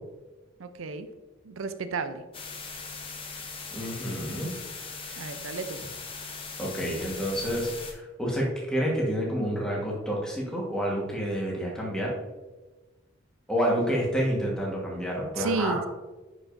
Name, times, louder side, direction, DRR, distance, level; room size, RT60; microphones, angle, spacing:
voice 1, 0.6-1.1 1.4-2.2 5.2-5.8 15.4-15.9, right 4 dB, 75° right, 10 dB, 0.5 m, -32 dB
sound 1, 2.3-7.9, left 4 dB, 25° left, 0.8 m, -39 dB
voice 2, 3.7-4.5 5.0-5.2 6.6-12.2 13.5-15.8, equal, 5° left, -3 dB, 1.3 m, -29 dB
9.8 x 4.9 x 2.6 m, 1.2 s
head